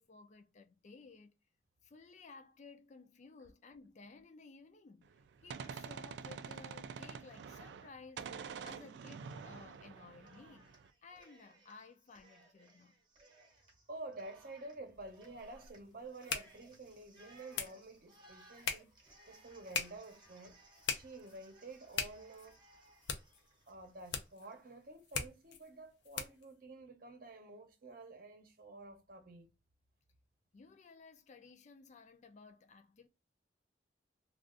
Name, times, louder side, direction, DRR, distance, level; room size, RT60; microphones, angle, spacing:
voice 1, 0.0-1.3 1.8-5.1 5.4-8.3 8.6-13.0 30.5-33.1, left 4 dB, 45° left, 0.4 m, -56 dB
Gunshot gunfire, 5.1-7.9 8.2-10.9, right 6 dB, 75° right, 0.3 m, -47 dB
voice 2, 8.6-9.0 13.9-18.9 19.3-20.6 20.9-22.6 23.7-29.5, right 2 dB, 55° right, 0.7 m, -50 dB
Cheering, 9.0-9.9 10.2-24.6, right 2 dB, 25° right, 0.9 m, -64 dB
sound 1, 14.9-26.5, left 6 dB, 90° left, 0.6 m, -44 dB
2.4 x 2.3 x 3.6 m
head